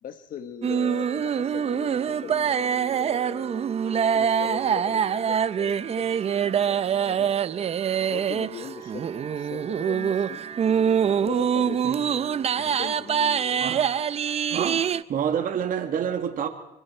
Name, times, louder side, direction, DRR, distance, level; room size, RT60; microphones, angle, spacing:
voice 1, 0.0-3.6 3.9-7.3 8.0-10.4 11.0-11.9 12.5-13.7 14.9-15.0, left 8 dB, 55° left, 1.2 m, -40 dB
sound 1, 0.6-15.0, right 8 dB, 40° right, 0.7 m, -25 dB
voice 2, 14.5-16.5, right 8 dB, 55° right, 2.1 m, -28 dB
26.0 x 25.0 x 4.4 m
cardioid pair, 110°, 17 cm